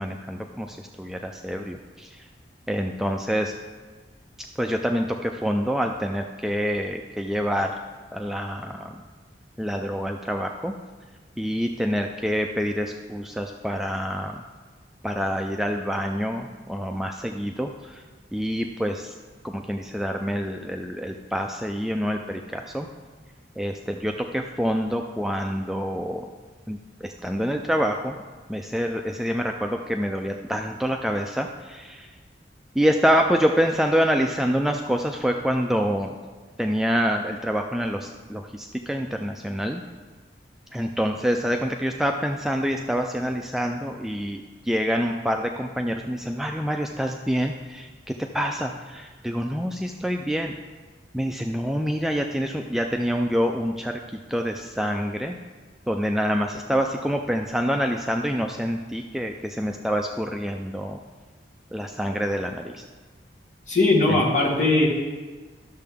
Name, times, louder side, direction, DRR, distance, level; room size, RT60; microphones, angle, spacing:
voice 1, 0.0-2.3 2.7-3.5 4.6-7.7 8.1-9.0 9.6-10.7 11.4-14.4 15.0-18.0 18.3-19.1 19.4-22.9 23.6-26.3 26.7-28.2 28.5-32.2 32.8-36.2 36.6-39.8 40.7-50.6 51.1-54.0 54.3-55.4 55.9-61.0 61.7-62.8 64.1-64.2, equal, ahead, 3 dB, 0.3 m, -26 dB
voice 2, 63.7-64.9, left 2 dB, 45° left, -3 dB, 1.6 m, -19 dB
11.5 x 6.6 x 3.6 m, 1.4 s
head